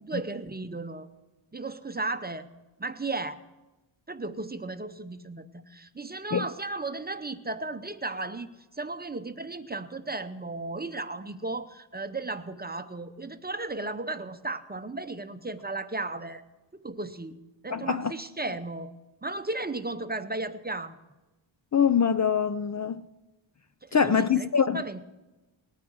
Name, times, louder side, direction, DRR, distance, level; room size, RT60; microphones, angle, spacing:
voice 1, 0.0-1.1 1.5-2.5 2.8-3.4 4.1-8.5 8.7-16.4 16.7-17.4 17.6-18.9 19.2-21.0 23.8-24.5 24.7-25.0, right 2 dB, 20° right, 0.6 m, -35 dB
voice 2, 17.7-18.1 21.7-23.0 23.9-24.8, left 7 dB, 40° left, 0.4 m, -24 dB
19.5 x 9.6 x 6.3 m
wide cardioid pair, 135°, 49 cm